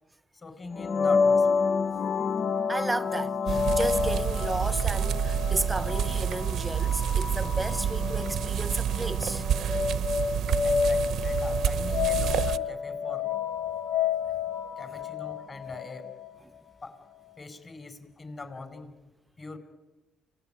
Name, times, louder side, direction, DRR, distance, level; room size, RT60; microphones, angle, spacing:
voice 1, 0.3-1.7 10.6-13.3 14.8-16.1 16.8-17.0 17.4-18.9 19.4-19.6, left 3 dB, 30° left, 5.3 m, -42 dB
sound 1, 0.7-16.4, left 5 dB, 55° left, 0.8 m, -29 dB
voice 2, 2.7-9.4, right 2 dB, 15° right, 0.8 m, -33 dB
sound 2, 3.5-12.6, right 9 dB, 75° right, 0.8 m, -28 dB
29.5 x 18.5 x 9.2 m
cardioid pair, 90°, 0 cm